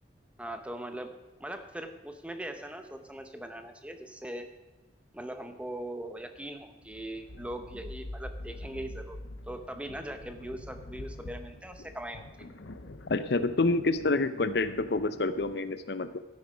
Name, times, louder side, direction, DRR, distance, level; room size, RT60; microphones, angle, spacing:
voice 1, 0.4-1.1 1.4-4.5 5.1-9.2 9.5-12.5, right 1 dB, 5° right, 7 dB, 0.8 m, -40 dB
sound 1, 6.7-15.6, left 1 dB, 90° left, 0.8 m, -45 dB
voice 2, 13.1-16.2, left 3 dB, 60° left, 12 dB, 0.6 m, -28 dB
12.5 x 9.9 x 5.1 m, 1.2 s
head